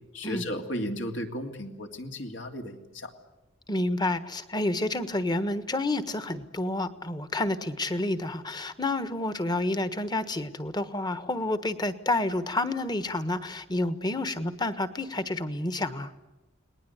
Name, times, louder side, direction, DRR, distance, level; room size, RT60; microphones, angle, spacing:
voice 1, 0.1-3.1, left 1 dB, 70° left, 4 dB, 2.9 m, -34 dB
voice 2, 3.7-16.1, left 2 dB, 20° left, 12 dB, 1.3 m, -29 dB
30.0 x 20.0 x 8.1 m, 1.1 s
head